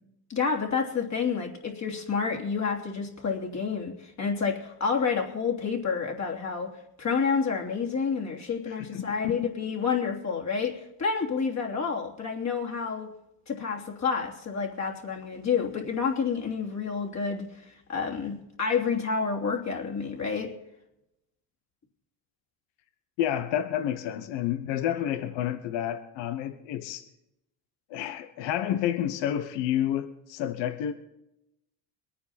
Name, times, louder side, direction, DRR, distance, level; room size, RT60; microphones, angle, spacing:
voice 1, 0.3-13.1 13.5-20.5, left 5 dB, 35° left, 2 dB, 3.1 m, -29 dB
voice 2, 8.9-9.5 23.2-27.1 27.9-30.9, left 11 dB, 70° left, 9 dB, 1.4 m, -29 dB
22.5 x 9.6 x 4.3 m, 0.86 s
supercardioid pair, 90°, 45 cm